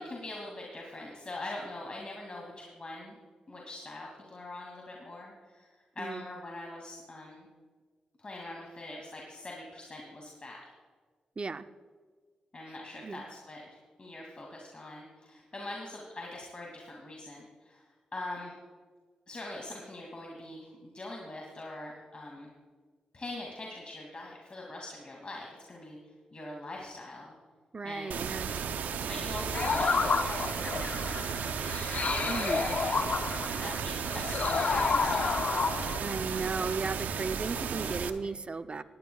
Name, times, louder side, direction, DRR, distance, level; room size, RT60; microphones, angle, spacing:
voice 1, 0.0-3.2 3.5-5.7 6.0-7.5 8.2-10.6 12.5-17.8 18.1-18.5 19.3-22.5 23.1-26.0 26.3-27.3 27.8-28.2 29.0-31.7 32.5-33.2 33.6-36.0 37.7-37.9, left 2 dB, 40° left, -2 dB, 2.5 m, -43 dB
voice 2, 6.0-6.3 11.4-11.7 13.0-13.3 27.7-28.6 32.2-32.7 36.0-38.8, right 4 dB, 40° right, 11 dB, 0.6 m, -35 dB
sound 1, 28.1-38.1, right 7 dB, 80° right, 0.6 m, -34 dB
sound 2, 29.5-36.4, left 5 dB, 55° left, 0.6 m, -30 dB
18.5 x 11.5 x 2.4 m, 1.5 s
supercardioid pair, 45°, 3 cm